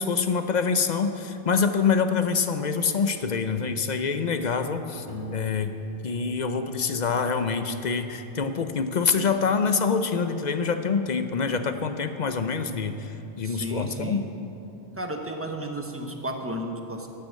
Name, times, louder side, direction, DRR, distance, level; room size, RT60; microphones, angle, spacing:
voice 1, 0.0-5.1 5.3-5.7 6.0-14.2, left 5 dB, 45° left, 9 dB, 0.7 m, -26 dB
Piano, 5.1-7.8, left 1 dB, 25° left, 2.2 m, -41 dB
voice 2, 13.4-14.2 15.0-17.1, right 1 dB, 15° right, 3 dB, 1.0 m, -33 dB
11.5 x 9.5 x 7.5 m, 2.8 s
omnidirectional pair, 1.1 m